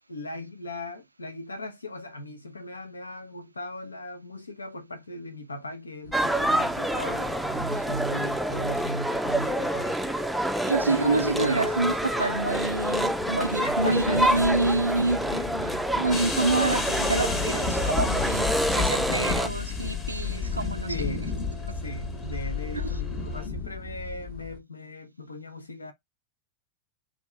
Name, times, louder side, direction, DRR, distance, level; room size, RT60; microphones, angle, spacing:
voice 1, 0.1-10.5 10.8-11.7 13.6-14.5 15.3-15.8 16.1-16.3 20.9-21.3 21.8-25.9, left 1 dB, 80° left, 0.6 m, -37 dB
sound 1, 6.0-24.6, left 5 dB, 45° left, 0.9 m, -35 dB
sound 2, 6.1-19.5, right 1 dB, ahead, 0.4 m, -27 dB
voice 2, 10.6-15.3 16.0-20.9 22.7-22.9, right 3 dB, 80° right, 0.4 m, -27 dB
sound 3, 16.1-23.5, left 4 dB, 25° left, 1.1 m, -36 dB
3.5 x 2.5 x 3.2 m
figure-of-eight pair, 90°, 0 cm